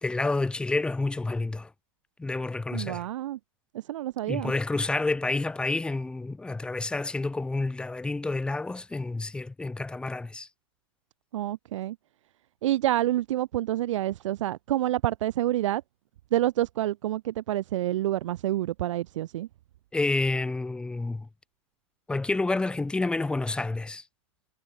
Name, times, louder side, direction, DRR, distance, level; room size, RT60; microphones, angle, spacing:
voice 1, 0.0-1.7 2.2-3.1 4.3-10.5 19.9-21.3 22.1-24.0, left 3 dB, 5° left, 0.4 m, -29 dB
voice 2, 2.7-3.4 3.7-4.5 11.3-12.0 12.6-15.8 16.3-19.5, right 14 dB, 75° right, 0.9 m, -28 dB
hypercardioid pair, 110°, 16 cm